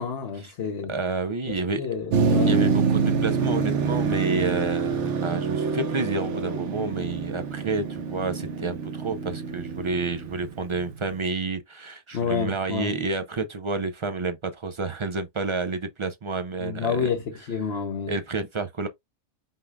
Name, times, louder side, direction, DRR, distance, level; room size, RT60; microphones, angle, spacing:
voice 1, 0.0-0.9 1.5-2.5 12.1-12.9 16.6-18.2, left 6 dB, 60° left, 1.0 m, -29 dB
voice 2, 0.9-1.8 2.5-17.1 18.1-18.9, right 3 dB, 50° right, 0.3 m, -29 dB
Motor vehicle (road), 2.1-11.1, right 5 dB, 70° right, 1.1 m, -26 dB
5.5 x 2.2 x 3.4 m
omnidirectional pair, 1.2 m